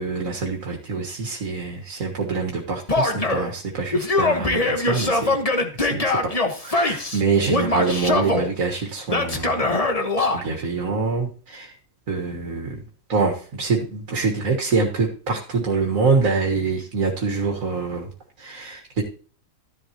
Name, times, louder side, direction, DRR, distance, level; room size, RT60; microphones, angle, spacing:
voice 1, 0.0-5.4 5.8-6.3 6.6-9.7 10.2-11.7 12.1-12.8 13.1-18.1 18.4-19.0, right 4 dB, 80° right, 1 dB, 2.0 m, -25 dB
Male speech man speaking / Yell, 2.9-3.5 3.9-7.2 7.5-8.5 9.1-10.4, left 2 dB, 30° left, 1.4 m, -22 dB
14.5 x 11.0 x 3.0 m, 0.42 s
omnidirectional pair, 1.4 m